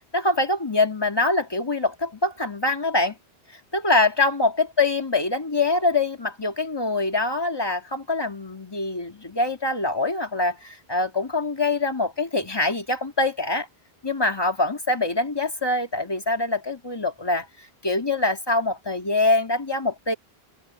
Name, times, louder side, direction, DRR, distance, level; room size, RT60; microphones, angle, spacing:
voice 1, 0.1-3.2 3.7-13.7 14.0-17.5 17.8-20.1, left 2 dB, 25° left, 2.1 m, -24 dB
open air
omnidirectional pair, 1.0 m